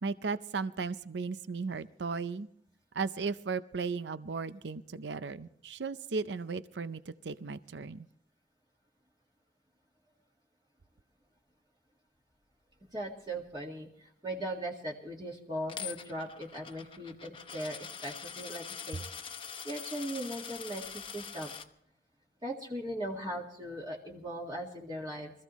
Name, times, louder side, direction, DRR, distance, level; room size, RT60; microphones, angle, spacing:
voice 1, 0.0-2.5 2.9-8.1, right 4 dB, 75° right, 13 dB, 0.6 m, -36 dB
voice 2, 12.9-19.0 19.6-21.5 22.4-25.3, right 1 dB, 25° right, -2 dB, 1.9 m, -39 dB
Coin (dropping), 15.7-21.7, left 7 dB, 30° left, 0.9 m, -43 dB
25.0 x 14.5 x 3.1 m, 0.69 s
head